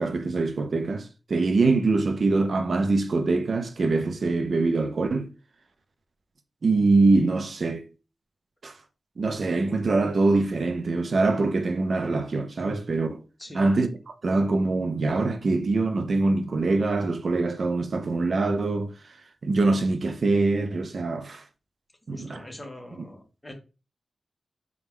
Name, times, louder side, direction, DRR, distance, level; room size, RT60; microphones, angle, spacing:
voice 1, 0.0-5.3 6.6-7.8 8.6-8.8 9.2-13.2 13.5-18.9 19.4-21.4 22.1-22.4, right 3 dB, 60° right, 0.5 m, -24 dB
voice 2, 13.4-13.7 22.1-23.5, left 1 dB, 15° left, 1.1 m, -42 dB
4.2 x 2.4 x 3.5 m
wide cardioid pair, 85°, 0 cm